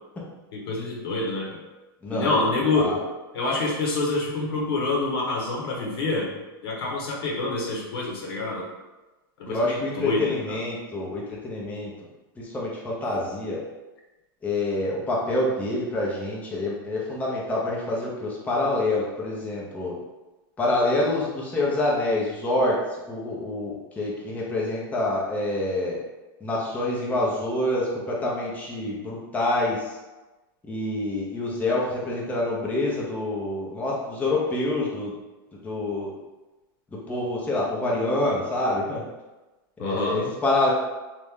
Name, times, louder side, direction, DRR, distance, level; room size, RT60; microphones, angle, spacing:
voice 1, 0.5-1.5 2.1-3.0 3.3-6.3 6.6-8.6 9.4-10.6 39.8-40.2, left 3 dB, 75° left, -2 dB, 1.2 m, -27 dB
voice 2, 2.0-2.4 2.7-3.0 9.5-11.9 12.4-13.6 14.4-19.9 20.6-22.8 23.1-26.0 26.4-29.9 30.7-35.1 35.6-36.1 37.1-39.1 39.8-40.7, left 2 dB, 10° left, -5 dB, 0.7 m, -26 dB
3.1 x 2.5 x 3.6 m, 1.1 s
hypercardioid pair, 125°, 13 cm